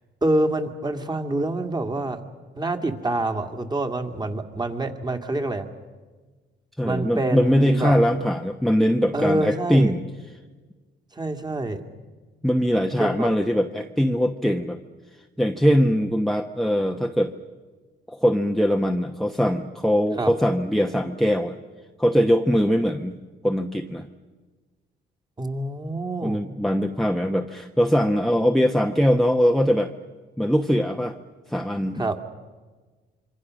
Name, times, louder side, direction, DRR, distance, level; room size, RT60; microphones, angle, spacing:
voice 1, 0.2-2.2 2.6-5.7 6.8-8.0 9.1-9.9 11.1-11.8 13.0-13.3 20.2-20.3 25.4-26.4 31.9-32.2, right 2 dB, 20° right, 7 dB, 2.3 m, -26 dB
voice 2, 6.8-10.0 12.4-14.8 15.4-17.3 18.1-21.6 22.0-23.2 23.4-24.1 26.2-29.9 30.4-31.2 31.5-32.0, equal, ahead, 4 dB, 1.0 m, -21 dB
26.0 x 24.5 x 6.4 m, 1.4 s
cardioid pair, 90°, 20 cm